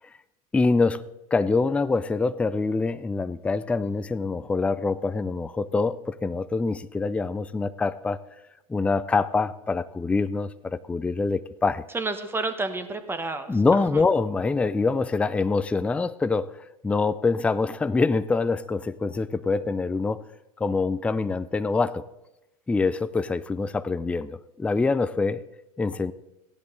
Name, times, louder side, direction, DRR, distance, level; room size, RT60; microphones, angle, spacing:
voice 1, 0.5-1.0 1.3-8.2 8.7-11.8 13.5-16.5 16.8-20.2 20.6-22.0 22.7-25.4 25.8-26.1, left 4 dB, 5° left, 14 dB, 0.3 m, -25 dB
voice 2, 11.9-14.0, right 3 dB, 10° right, 8 dB, 1.2 m, -31 dB
15.5 x 10.5 x 3.9 m, 0.94 s
hypercardioid pair, 105°, 19 cm